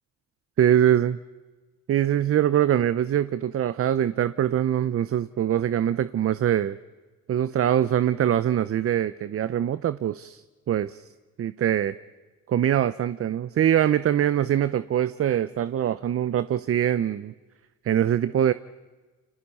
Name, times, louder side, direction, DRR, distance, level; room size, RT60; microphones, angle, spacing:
voice 1, 0.6-1.2 1.9-6.8 7.3-11.1 11.4-12.0 12.5-17.3 17.8-18.5, right 10 dB, 50° right, 14 dB, 0.7 m, -23 dB
29.5 x 26.0 x 5.6 m, 1.3 s
cardioid pair, 90°, 30 cm